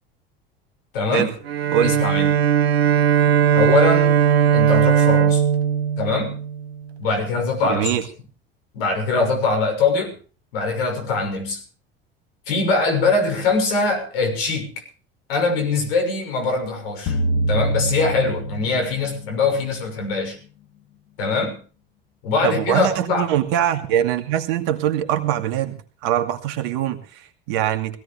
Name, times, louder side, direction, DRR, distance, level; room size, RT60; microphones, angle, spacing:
voice 1, 0.9-1.3 1.8-2.3 3.5-4.1 4.5-5.4 6.0-6.4 7.0-7.9 8.7-10.1 10.5-11.6 12.5-14.7 15.3-17.2 17.5-20.4 21.2-21.6 22.2-23.3, left 3 dB, 70° left, 3 dB, 6.4 m, -22 dB
Bowed string instrument, 1.4-6.9, right 9 dB, 80° right, 1.0 m, -18 dB
voice 2, 7.6-8.0 22.4-28.0, right 11 dB, 60° right, 7 dB, 2.5 m, -23 dB
sound 1, 17.1-19.5, right 1 dB, 55° left, 1.9 m, -24 dB
21.5 x 16.5 x 3.3 m, 0.38 s
figure-of-eight pair, 65°, 30 cm